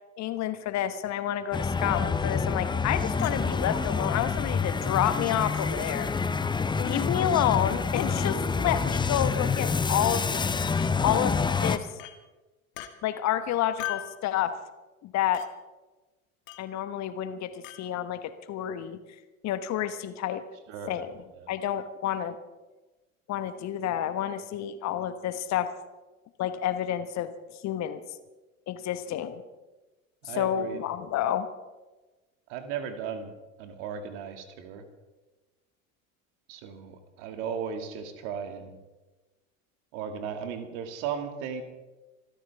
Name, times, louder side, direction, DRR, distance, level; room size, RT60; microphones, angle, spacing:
voice 1, 0.2-6.1 6.8-10.4 11.0-11.9 13.0-14.5 15.0-15.4 16.6-19.0 19.4-20.4 20.9-21.1 21.5-22.3 23.3-25.7 26.4-27.3 27.6-28.0 28.7-29.4 30.2-31.5, left 11 dB, 40° left, 11 dB, 1.2 m, -29 dB
sound 1, 1.5-11.8, left 5 dB, 10° left, 0.7 m, -27 dB
Chink clink, 3.2-3.4 4.3-4.4 5.5-5.7 6.9-7.0 8.0-8.1 9.3-9.5 10.8-10.9 12.0-12.2 12.8-12.9 13.8-14.2 15.3-15.5 16.5-16.7 17.6-17.8, left 14 dB, 65° left, 1.6 m, -39 dB
voice 2, 5.7-6.0 20.7-21.1 21.4-21.5 30.3-30.8 32.5-33.3 33.6-34.8 36.5-38.8 39.9-41.6, right 7 dB, 55° right, 7 dB, 2.3 m, -36 dB
26.0 x 13.5 x 3.6 m, 1.2 s
figure-of-eight pair, 70°, 42 cm